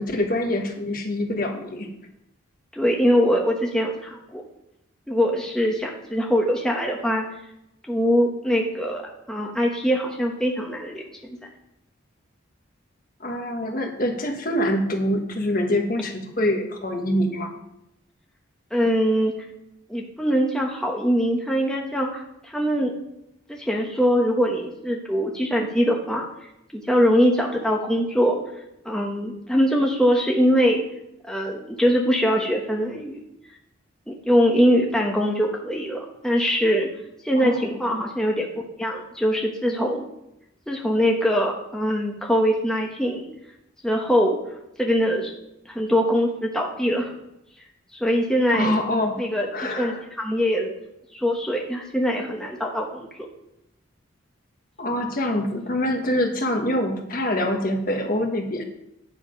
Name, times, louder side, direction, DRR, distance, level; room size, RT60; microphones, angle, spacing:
voice 1, 0.0-1.9 13.2-17.6 37.4-37.7 48.5-49.2 49.5-50.0 54.8-58.6, left 1 dB, 45° left, 4 dB, 1.4 m, -25 dB
voice 2, 2.7-4.4 5.1-7.3 7.9-9.0 9.3-11.5 18.7-19.3 19.9-22.9 23.5-26.3 26.7-28.4 28.8-30.8 31.3-33.2 34.1-36.9 37.2-38.5 38.8-40.1 40.7-43.3 43.8-44.4 44.8-45.3 45.7-47.1 47.9-48.8 49.2-50.7 51.1-53.1, equal, 5° left, -1 dB, 1.0 m, -22 dB
9.8 x 7.4 x 5.2 m, 0.83 s
head